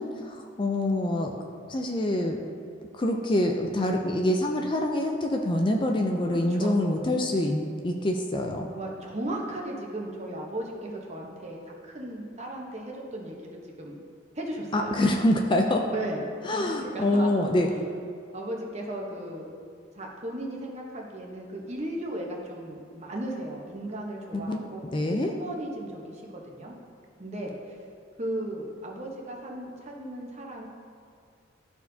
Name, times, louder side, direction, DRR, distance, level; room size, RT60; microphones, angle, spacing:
voice 1, 0.0-1.3 1.7-2.4 2.9-8.7 14.7-15.9 16.4-17.7 24.3-24.6 24.9-25.3, left 1 dB, 25° left, 2 dB, 0.4 m, -25 dB
voice 2, 6.2-7.2 8.7-14.0 14.3-14.9 15.9-17.3 18.3-19.5 19.9-26.8 27.2-27.7 28.2-30.7, right 1 dB, 35° right, -1 dB, 1.0 m, -36 dB
12.5 x 4.4 x 2.7 m, 2.3 s
head